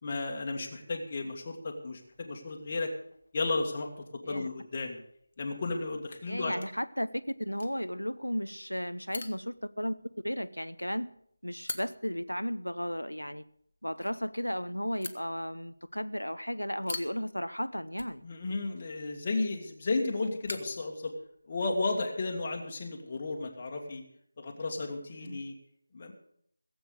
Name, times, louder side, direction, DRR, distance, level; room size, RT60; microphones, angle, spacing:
voice 1, 0.0-2.9 3.3-5.0 5.4-6.5 18.2-21.1 21.5-24.0 24.4-25.5 25.9-26.1, left 3 dB, 30° left, 1 dB, 1.7 m, -33 dB
sound 1, 2.0-21.6, left 3 dB, 45° left, 1.2 m, -49 dB
voice 2, 6.3-11.1 11.4-13.4 13.8-18.3 25.2-25.4, equal, 90° left, 13 dB, 0.7 m, -34 dB
17.0 x 8.0 x 6.6 m, 0.69 s
figure-of-eight pair, 165°, 0 cm